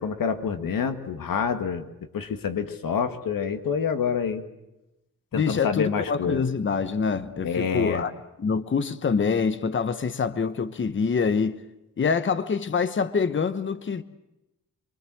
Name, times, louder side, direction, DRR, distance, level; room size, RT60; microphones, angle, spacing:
voice 1, 0.0-1.9 2.1-4.4 5.3-6.4 7.4-8.0, left 6 dB, 85° left, 1.9 m, -27 dB
voice 2, 5.3-8.1 8.4-11.6 12.0-14.0, left 5 dB, 35° left, 1.0 m, -25 dB
25.0 x 24.5 x 7.8 m
wide cardioid pair, 140°, 33 cm